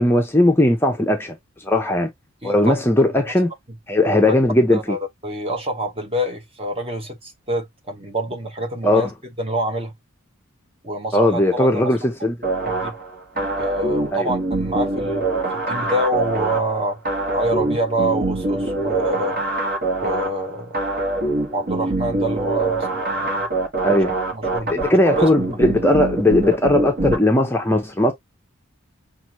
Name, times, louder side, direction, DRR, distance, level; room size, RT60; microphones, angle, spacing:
voice 1, 0.0-1.4 1.6-2.1 2.4-3.5 3.9-5.0 8.8-9.1 11.1-12.4 13.4-13.5 14.1-14.3 23.8-24.2 24.7-28.1, left 1 dB, 10° left, 0.6 m, -18 dB
voice 2, 2.4-2.7 4.7-9.1 9.4-9.9 10.8-11.9 12.6-12.9 13.6-17.0 17.3-19.4 20.0-20.8 21.5-23.4 24.3-25.6, right 1 dB, 25° right, 1.1 m, -26 dB
sound 1, 12.4-27.2, right 2 dB, 45° right, 1.3 m, -24 dB
5.9 x 2.5 x 2.9 m
head